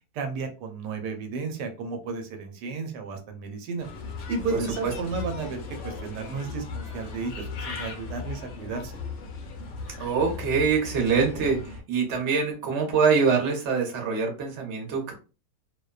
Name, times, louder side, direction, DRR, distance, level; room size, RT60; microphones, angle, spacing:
voice 1, 0.1-3.9 4.3-9.0, right 4 dB, 90° right, 5 dB, 1.2 m, -33 dB
Bird, 3.8-11.8, left 4 dB, 70° left, 0.7 m, -37 dB
voice 2, 4.5-4.9 10.0-15.1, right 5 dB, 55° right, 1 dB, 0.9 m, -24 dB
2.7 x 2.1 x 2.3 m, 0.33 s
omnidirectional pair, 1.7 m